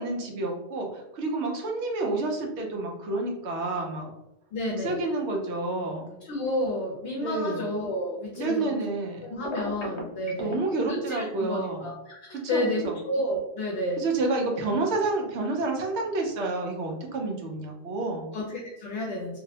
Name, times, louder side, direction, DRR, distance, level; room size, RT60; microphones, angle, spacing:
voice 1, 0.0-4.1 4.7-6.1 7.2-7.7 8.3-9.2 10.4-11.9 12.3-13.0 14.0-18.3, right 2 dB, 80° right, 1 dB, 0.9 m, -29 dB
voice 2, 4.5-5.0 6.2-8.7 9.2-14.0 18.3-19.4, left 1 dB, 70° left, -2 dB, 0.8 m, -31 dB
Telephone, 9.4-10.5, equal, 50° left, 0.3 m, -34 dB
2.6 x 2.0 x 2.7 m, 0.88 s
omnidirectional pair, 1.1 m